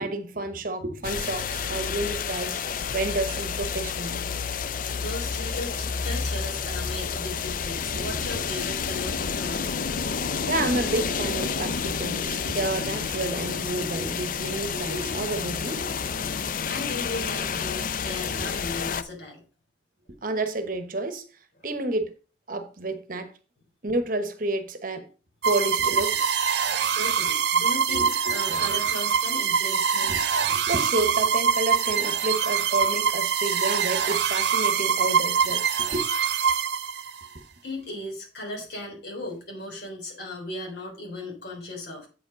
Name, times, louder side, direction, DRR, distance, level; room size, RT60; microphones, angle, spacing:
voice 1, 0.0-2.6 2.9-4.3 7.9-8.3 10.5-15.9 18.3-18.5 20.2-21.2 21.6-22.1 22.5-23.3 23.8-25.1 25.4-26.2 27.9-28.1 28.5-28.7 30.1-36.0, right 2 dB, 50° right, 1.0 m, -30 dB
sound 1, 1.0-19.0, left 6 dB, 50° left, 0.4 m, -30 dB
voice 2, 4.6-9.8 14.2-14.4 16.7-19.4 26.9-30.2 37.6-42.1, left 2 dB, 65° left, 3.4 m, -36 dB
sound 2, 25.4-37.3, right 7 dB, 70° right, 0.7 m, -24 dB
8.3 x 5.1 x 5.1 m
head